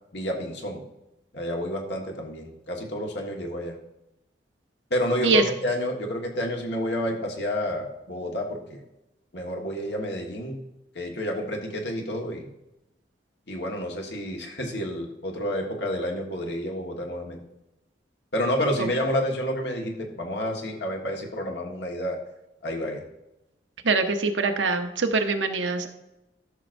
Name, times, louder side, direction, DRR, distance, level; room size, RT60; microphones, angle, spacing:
voice 1, 0.1-0.8 1.3-3.8 4.9-8.8 9.3-10.6 10.9-12.5 13.5-17.4 18.3-22.2 22.6-23.0, equal, 65° left, 1 dB, 1.6 m, -29 dB
voice 2, 23.8-25.9, right 4 dB, 85° right, 5 dB, 1.0 m, -23 dB
13.5 x 6.4 x 2.6 m, 0.92 s
head